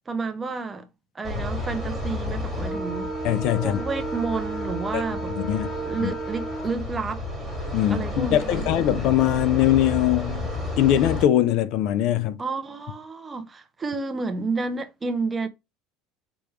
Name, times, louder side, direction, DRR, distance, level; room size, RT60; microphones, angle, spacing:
voice 1, 0.1-0.9 1.1-3.1 3.6-5.4 5.7-7.2 7.9-8.7 12.4-15.5, right 4 dB, 15° right, 0.7 m, -30 dB
sound 1, 1.2-11.2, left 1 dB, 5° left, 2.3 m, -31 dB
voice 2, 3.2-3.8 4.9-5.0 5.5-5.7 6.0-6.1 7.7-10.5 10.8-12.4, left 12 dB, 55° left, 0.5 m, -21 dB
5.0 x 3.4 x 3.1 m
cardioid pair, 145°, 0 cm